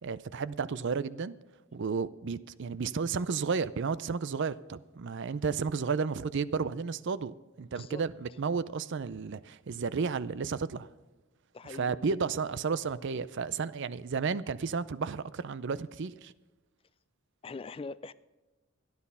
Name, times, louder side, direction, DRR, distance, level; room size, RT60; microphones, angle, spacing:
voice 1, 0.0-1.3 1.7-10.9 11.6-16.3, right 5 dB, 60° right, 0.5 m, -32 dB
voice 2, 11.5-11.9 17.4-18.1, left 4 dB, 25° left, 0.3 m, -42 dB
14.0 x 10.5 x 5.5 m
head